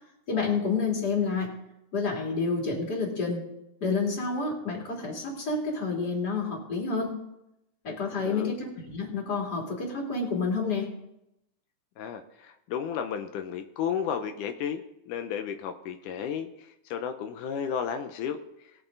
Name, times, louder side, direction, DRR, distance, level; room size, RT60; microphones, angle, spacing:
voice 1, 0.3-1.6 1.9-3.4 3.8-7.2 7.8-10.9, left 4 dB, 30° left, -2 dB, 3.3 m, -29 dB
voice 2, 12.0-18.7, left 8 dB, 85° left, 7 dB, 2.3 m, -33 dB
20.5 x 7.0 x 3.9 m, 0.84 s
omnidirectional pair, 3.6 m